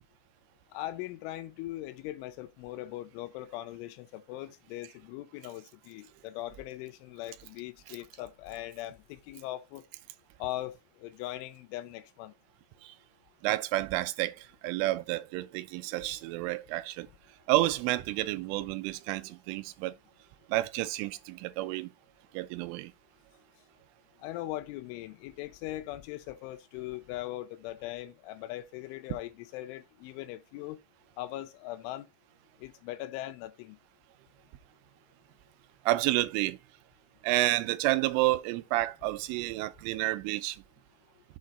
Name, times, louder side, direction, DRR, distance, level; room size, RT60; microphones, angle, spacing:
voice 1, 0.7-9.9 10.4-12.3 24.2-30.8 31.2-32.1 32.6-33.8, left 15 dB, 85° left, 3.1 m, -40 dB
voice 2, 13.4-17.1 17.5-19.9 20.5-21.9 22.3-22.9 35.9-36.6 37.2-40.6, right 17 dB, 90° right, 3.2 m, -30 dB
7.4 x 4.6 x 4.1 m
omnidirectional pair, 5.6 m